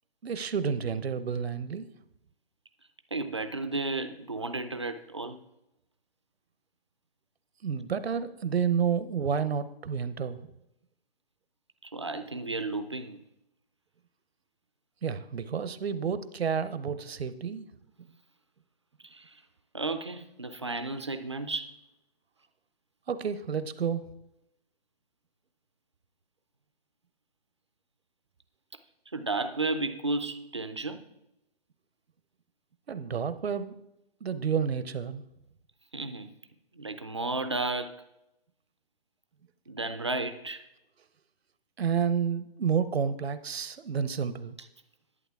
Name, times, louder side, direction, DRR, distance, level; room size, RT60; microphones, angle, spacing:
voice 1, 0.2-1.9 7.6-10.4 15.0-17.7 23.1-24.0 32.9-33.7 34.2-35.2 41.8-44.5, right 7 dB, 80° right, 0.8 m, -30 dB
voice 2, 3.1-5.4 11.8-13.2 19.0-19.4 19.7-21.7 29.1-31.0 35.9-36.3 36.7-38.0 39.7-40.6, right 2 dB, 30° right, 0.4 m, -33 dB
11.0 x 8.6 x 3.5 m
hypercardioid pair, 165°, 31 cm